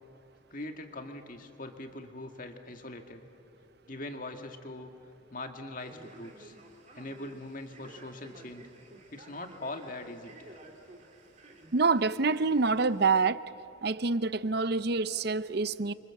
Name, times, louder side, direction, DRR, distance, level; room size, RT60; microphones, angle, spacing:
voice 1, 0.5-3.3 3.9-4.9 5.3-6.6 6.9-8.7 9.1-10.6, left 2 dB, 40° left, 2.1 m, -42 dB
Male speech man speaking, 5.8-13.1, right 2 dB, 35° right, 2.5 m, -53 dB
voice 2, 11.7-13.4 13.8-15.9, right 4 dB, 50° right, 0.7 m, -26 dB
29.5 x 25.0 x 7.8 m
head